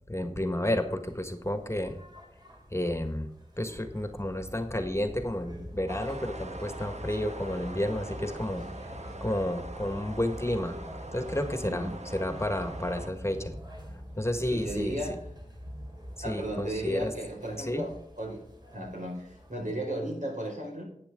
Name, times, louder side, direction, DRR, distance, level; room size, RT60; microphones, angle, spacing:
voice 1, 0.1-2.0 2.7-3.3 3.6-8.6 9.2-10.8 11.1-13.5 14.1-15.0 16.2-17.1 17.6-17.8, left 1 dB, 20° left, 7 dB, 1.5 m, -31 dB
sound 1, 1.0-20.2, equal, 35° right, 2.9 m, -45 dB
sound 2, 5.9-13.1, right 2 dB, 60° right, 1.2 m, -43 dB
voice 2, 14.5-15.2 16.2-18.4 18.7-20.8, right 1 dB, 75° right, -1 dB, 5.0 m, -35 dB
11.5 x 9.0 x 3.7 m, 0.69 s
wide cardioid pair, 40°, 13 cm